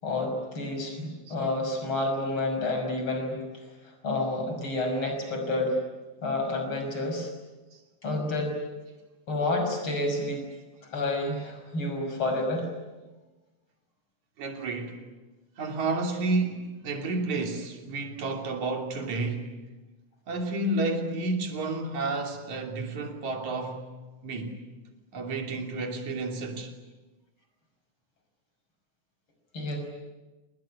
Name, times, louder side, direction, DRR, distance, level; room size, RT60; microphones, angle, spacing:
voice 1, 0.0-3.4 4.0-5.8 6.2-7.3 8.0-8.6 9.3-10.4 10.9-12.7 29.5-29.8, left 2 dB, 40° left, 6.8 m, -29 dB
voice 2, 14.4-15.0 15.6-19.5 20.3-23.9 24.2-24.6 25.1-26.7, right 2 dB, 70° right, 4.3 m, -31 dB
28.0 x 20.5 x 10.0 m
omnidirectional pair, 3.4 m